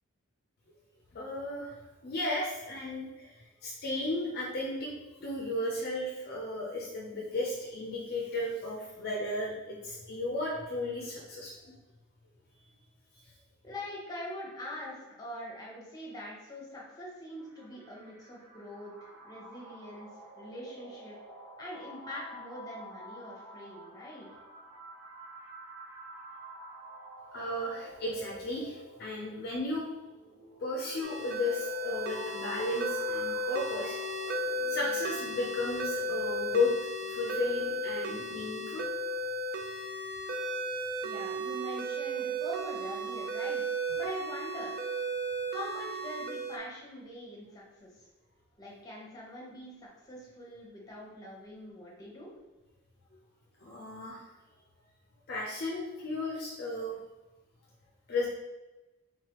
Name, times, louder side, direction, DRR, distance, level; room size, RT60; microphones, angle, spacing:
voice 1, 1.1-1.7 2.0-11.7 27.3-29.9 30.6-34.0 34.7-36.8 37.1-38.8 53.6-54.3 55.3-57.0 58.1-58.3, left 2 dB, 45° left, -3 dB, 0.5 m, -34 dB
voice 2, 13.6-18.9 19.2-21.1 21.6-24.3 41.0-43.6 43.9-44.7 45.5-47.9 48.6-52.3, left 1 dB, 15° left, -4 dB, 0.9 m, -43 dB
sound 1, 17.4-35.4, right 1 dB, 75° right, 0.9 m, -49 dB
sound 2, 31.0-46.6, right 1 dB, 45° right, 0.3 m, -35 dB
3.7 x 3.2 x 2.9 m, 1.1 s
head